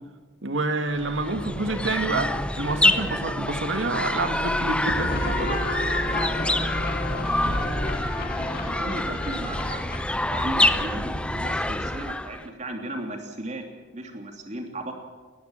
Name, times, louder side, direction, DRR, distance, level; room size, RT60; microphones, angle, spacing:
voice 1, 0.4-5.6, right 3 dB, 80° right, 8 dB, 1.9 m, -28 dB
sound 1, 0.9-12.5, left 1 dB, 5° left, 0.6 m, -27 dB
sound 2, 4.9-12.2, left 1 dB, 50° left, 1.8 m, -32 dB
voice 2, 8.6-9.8 10.3-13.6 13.9-14.9, right 1 dB, 40° right, 3 dB, 3.0 m, -35 dB
20.5 x 14.5 x 8.9 m, 1.4 s
head